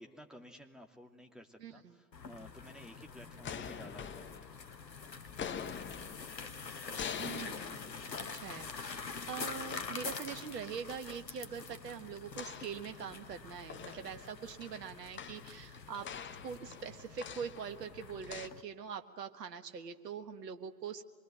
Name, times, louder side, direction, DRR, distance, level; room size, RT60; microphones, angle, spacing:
voice 1, 0.0-4.5, equal, ahead, 3 dB, 2.7 m, -54 dB
voice 2, 1.6-2.0 7.2-7.9 8.3-16.1 16.4-21.0, right 7 dB, 70° right, 8 dB, 1.7 m, -43 dB
sound 1, 2.1-18.6, left 5 dB, 90° left, 0.9 m, -46 dB
sound 2, 3.1-4.9 5.3-10.7 12.3-13.4 13.7-18.5, left 7 dB, 25° left, 1.1 m, -46 dB
26.0 x 21.0 x 9.2 m, 1.5 s
figure-of-eight pair, 75°, 50 cm